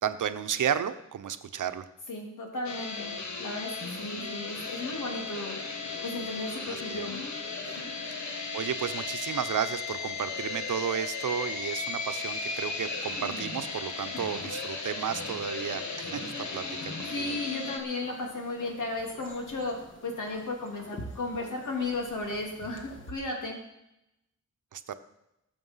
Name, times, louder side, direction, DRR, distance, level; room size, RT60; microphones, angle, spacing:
voice 1, 0.0-1.8 6.7-7.1 8.2-17.3 24.7-24.9, right 8 dB, 90° right, 10 dB, 0.9 m, -33 dB
voice 2, 2.1-3.1 3.4-5.6 6.0-7.2 7.6-8.2 14.1-14.3 17.1-19.8 20.0-23.6, left 2 dB, 85° left, 1 dB, 3.5 m, -35 dB
sound 1, 2.6-17.8, left 4 dB, 65° left, 2.1 m, -36 dB
sound 2, 18.0-23.1, equal, 40° left, 2.2 m, -47 dB
20.5 x 7.1 x 5.7 m, 0.87 s
wide cardioid pair, 125°, 30 cm